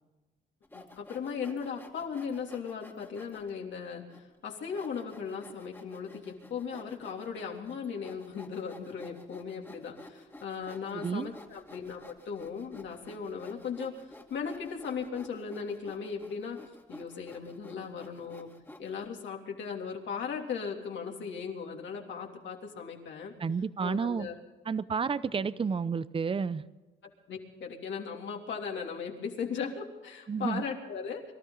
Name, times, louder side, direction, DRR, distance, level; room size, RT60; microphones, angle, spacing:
Sawing, 0.6-3.5 4.1-4.2 4.7-19.1, left 1 dB, 10° left, 2.3 m, -52 dB
voice 1, 0.7-16.6 16.9-18.5 18.8-23.3 23.8-24.3 25.3-25.4 27.0-31.2, left 6 dB, 70° left, 0 dB, 3.2 m, -37 dB
voice 2, 10.9-11.3 23.4-24.3 24.7-26.6 30.3-30.6, right 5 dB, 25° right, 16 dB, 0.7 m, -31 dB
24.5 x 13.0 x 4.0 m, 1.2 s
cardioid pair, 90°, 20 cm